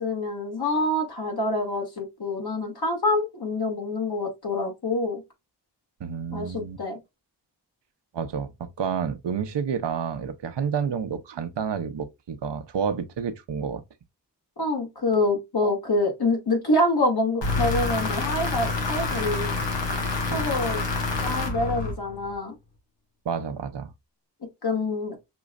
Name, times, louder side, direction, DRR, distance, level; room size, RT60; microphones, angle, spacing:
voice 1, 0.0-5.2 6.3-7.0 14.6-19.5 20.3-20.8 21.2-22.6 24.6-25.2, left 2 dB, 65° left, 2.2 m, -26 dB
voice 2, 6.0-6.8 8.1-13.8 20.3-20.4 23.2-23.9, right 7 dB, 80° right, 0.7 m, -30 dB
sound 1, 17.4-22.3, left 3 dB, 90° left, 1.3 m, -27 dB
5.9 x 3.1 x 2.4 m
cardioid pair, 45°, 42 cm